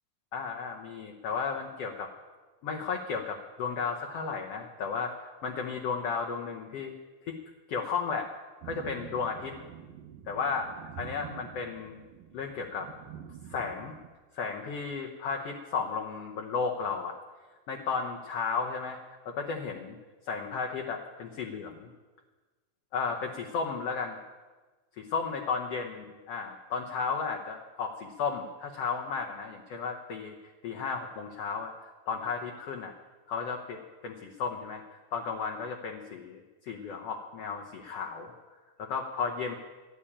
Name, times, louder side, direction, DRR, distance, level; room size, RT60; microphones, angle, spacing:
voice 1, 0.3-2.1 2.6-5.1 5.4-6.9 7.2-7.3 7.7-8.3 8.6-9.5 10.3-10.7 11.0-12.0 12.3-12.9 13.5-13.9 14.3-17.1 17.7-19.0 19.2-20.0 20.2-21.9 22.9-24.2 25.1-30.3 30.6-32.9 33.3-34.8 35.1-38.3 38.8-39.5, left 5 dB, 75° left, 1 dB, 1.4 m, -34 dB
sound 1, 8.6-14.1, right 9 dB, 75° right, 2.2 m, -47 dB
11.5 x 10.5 x 8.6 m, 1.3 s
omnidirectional pair, 4.1 m